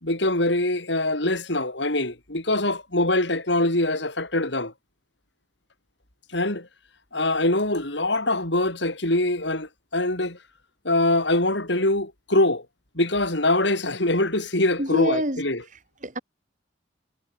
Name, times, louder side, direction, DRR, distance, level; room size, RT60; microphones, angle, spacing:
voice 1, 0.0-4.7 6.3-6.7 7.1-10.4 10.8-12.7 13.0-15.6, left 2 dB, 65° left, 5.6 m, -23 dB
voice 2, 14.8-16.2, right 1 dB, 40° right, 6.5 m, -28 dB
head